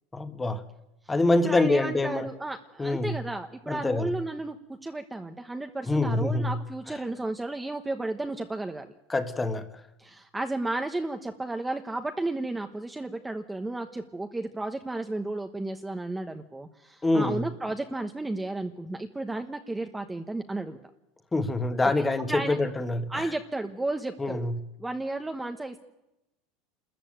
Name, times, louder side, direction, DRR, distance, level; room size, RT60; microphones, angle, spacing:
voice 1, 0.1-0.6 1.1-2.3 2.8-3.2 3.7-4.2 5.9-6.6 9.1-9.7 17.0-17.5 21.3-23.3 24.2-24.6, left 2 dB, 10° left, 1.6 m, -26 dB
voice 2, 1.4-8.9 10.0-20.8 21.8-22.6 23.1-24.5 24.8-25.8, right 2 dB, 10° right, 1.1 m, -33 dB
27.0 x 14.0 x 9.0 m
supercardioid pair, 135°, 0 cm